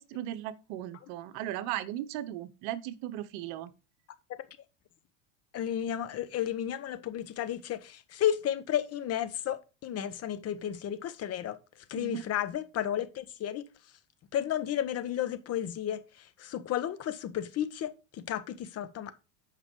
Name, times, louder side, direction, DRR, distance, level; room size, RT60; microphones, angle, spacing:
voice 1, 0.0-3.7 12.0-12.2, right 13 dB, 60° right, 1.0 m, -37 dB
voice 2, 5.5-11.6 11.9-13.6 14.3-16.0 16.4-19.1, left 10 dB, 40° left, 1.1 m, -32 dB
8.0 x 5.5 x 4.6 m
supercardioid pair, 105°, 39 cm